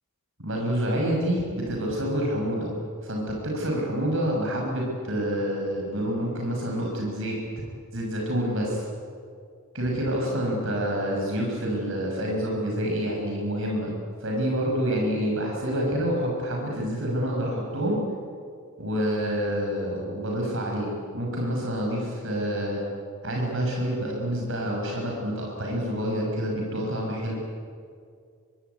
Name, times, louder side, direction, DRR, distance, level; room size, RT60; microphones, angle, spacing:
voice 1, 0.4-2.7 3.0-7.4 7.9-8.9 9.7-13.9 14.2-18.0 18.8-20.9 21.1-22.8 23.2-27.4, equal, 60° right, -1 dB, 6.3 m, -27 dB
25.5 x 23.5 x 9.5 m, 2.2 s
head